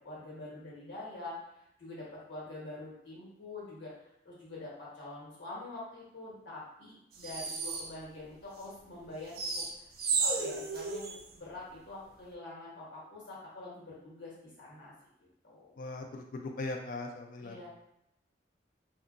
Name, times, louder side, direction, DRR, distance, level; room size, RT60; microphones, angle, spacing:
voice 1, 0.0-1.3 1.8-3.9 4.2-9.6 10.2-14.9 15.4-15.7 17.4-17.7, left 2 dB, 80° left, -6 dB, 1.2 m, -45 dB
sound 1, 7.2-7.9 9.4-11.2, right 4 dB, 55° right, 0.4 m, -33 dB
voice 2, 15.8-17.7, left 2 dB, 45° left, 3 dB, 0.3 m, -39 dB
2.7 x 2.4 x 2.5 m, 0.80 s
head